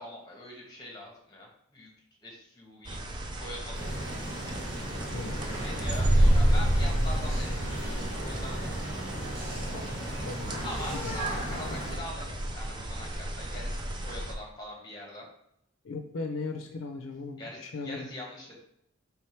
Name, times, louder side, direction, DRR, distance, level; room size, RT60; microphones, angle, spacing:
voice 1, 0.0-1.9 2.2-3.0 3.4-4.0 5.6-8.9 10.6-13.8 14.0-15.3 17.4-18.6, left 1 dB, 20° left, -1 dB, 1.2 m, -43 dB
sound 1, 2.8-14.3, right 1 dB, 20° right, 0.4 m, -30 dB
sound 2, 3.7-12.0, right 1 dB, 65° right, 1.5 m, -37 dB
voice 2, 5.1-5.5 9.7-9.9 10.2-10.7 10.9-11.8 15.8-18.1, left 3 dB, 75° left, 5 dB, 0.5 m, -38 dB
3.4 x 3.3 x 4.4 m, 0.77 s
head